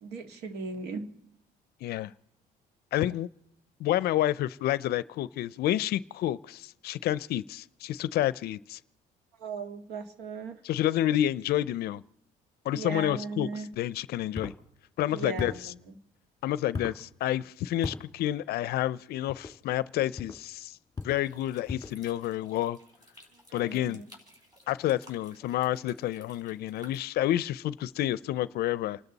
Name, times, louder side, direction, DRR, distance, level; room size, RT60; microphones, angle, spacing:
voice 1, 0.0-1.1 9.4-10.6 12.7-13.7 15.1-16.0 23.5-24.1, right 4 dB, 80° right, 1.8 m, -38 dB
voice 2, 1.8-2.1 2.9-3.3 3.8-8.8 10.6-12.0 12.6-13.5 13.8-14.5 15.0-15.7 16.4-20.8 21.0-22.8 23.5-24.0 24.7-29.0, left 13 dB, 70° left, 0.5 m, -29 dB
sound 1, 14.3-14.6 15.4-15.7 16.7-17.0 17.8-18.1 19.3-19.6 20.2-20.4 20.9-21.3 21.7-22.0, left 4 dB, 20° left, 1.7 m, -37 dB
sound 2, 21.0-27.0, left 1 dB, 20° right, 4.7 m, -56 dB
29.0 x 12.5 x 4.0 m
cardioid pair, 110°, 17 cm